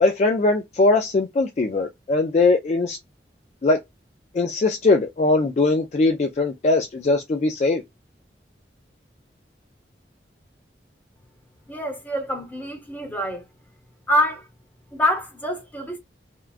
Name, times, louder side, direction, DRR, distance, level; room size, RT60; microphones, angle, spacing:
voice 1, 0.0-3.0 3.6-3.8 4.3-7.8, left 3 dB, 40° left, 0.3 m, -20 dB
voice 2, 11.7-13.4 14.1-14.5 14.9-16.0, equal, 10° left, 0.8 m, -25 dB
3.5 x 2.2 x 2.4 m
head